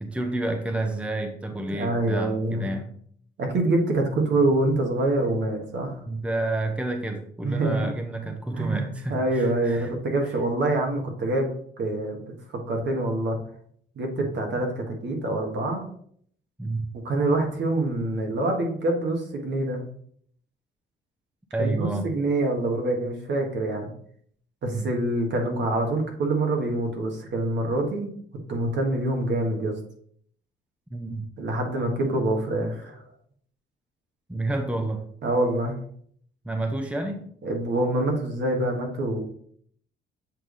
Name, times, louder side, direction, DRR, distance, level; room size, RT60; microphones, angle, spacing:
voice 1, 0.0-2.9 6.1-9.9 16.6-16.9 21.5-22.1 24.7-24.9 30.9-31.3 34.3-35.1 36.4-37.3, right 2 dB, 5° right, 5 dB, 0.7 m, -29 dB
voice 2, 1.7-2.7 3.4-6.0 7.4-8.0 8.5-11.5 11.8-13.4 13.9-15.9 16.9-19.8 21.6-23.9 24.6-28.1 28.5-29.7 31.4-33.0 35.2-35.8 37.4-39.2, right 2 dB, 65° right, 2 dB, 1.6 m, -26 dB
7.5 x 3.4 x 3.9 m, 0.63 s
cardioid pair, 90°, 20 cm